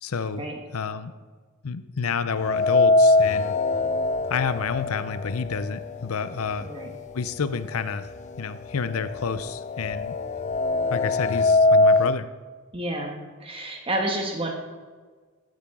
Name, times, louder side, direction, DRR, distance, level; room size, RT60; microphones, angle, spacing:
voice 1, 0.0-0.4 0.7-1.1 1.6-3.5 4.3-6.7 7.1-8.1 8.4-10.2 10.9-12.3, left 5 dB, 75° left, 13 dB, 0.6 m, -29 dB
sound 1, 2.4-6.4 6.8-6.9 7.9-8.0 8.3-12.2, left 2 dB, 30° left, 0.3 m, -22 dB
voice 2, 6.6-6.9 12.7-14.5, right 1 dB, 25° right, 2 dB, 1.2 m, -30 dB
14.5 x 8.7 x 3.7 m, 1.5 s
head